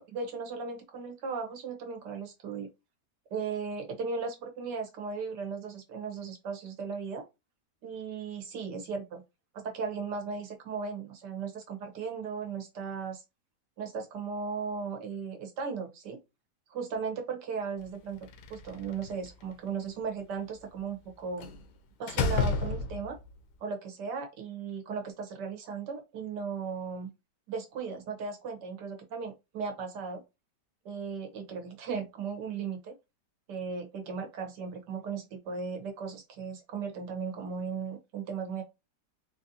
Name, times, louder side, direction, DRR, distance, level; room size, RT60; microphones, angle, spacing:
voice 1, 0.0-2.7 3.3-7.2 7.8-9.2 9.5-13.2 13.8-16.2 16.7-18.2 18.5-21.4 22.0-23.2 23.6-27.1 27.5-30.2 30.8-32.9 33.5-38.6, right 5 dB, 75° right, 1.5 m, -36 dB
Slam, 18.2-19.3 21.4-21.6 22.1-23.3, left 4 dB, 85° left, 1.3 m, -30 dB
4.1 x 2.5 x 2.7 m
omnidirectional pair, 1.8 m